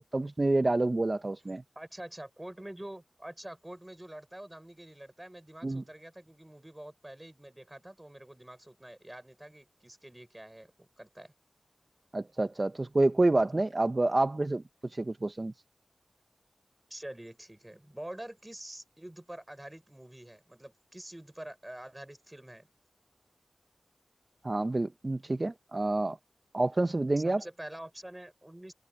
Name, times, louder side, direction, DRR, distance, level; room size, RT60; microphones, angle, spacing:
voice 1, 0.0-1.6 5.6-5.8 12.1-15.5 24.4-26.2 26.5-27.4, right 2 dB, 35° right, 0.9 m, -28 dB
voice 2, 1.8-11.3 16.9-22.7 27.2-28.7, right 1 dB, 15° right, 5.9 m, -46 dB
wide cardioid pair, 80°, 0 cm